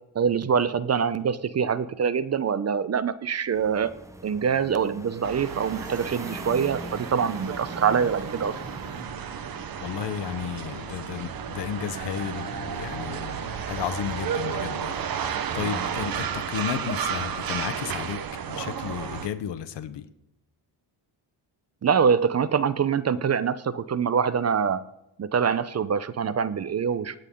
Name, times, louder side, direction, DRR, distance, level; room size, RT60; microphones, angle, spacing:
voice 1, 0.1-3.9 4.2-8.6 21.8-24.8 25.2-27.1, right 6 dB, 35° right, 0.7 m, -24 dB
sound 1, 3.5-9.0, right 1 dB, 5° right, 0.9 m, -42 dB
sound 2, 5.2-19.3, right 7 dB, 55° right, 1.1 m, -33 dB
sound 3, 6.7-14.8, left 6 dB, 90° left, 1.8 m, -49 dB
voice 2, 9.8-20.1, left 9 dB, 70° left, 1.1 m, -33 dB
25.0 x 9.1 x 3.8 m
cardioid pair, 105°, 43 cm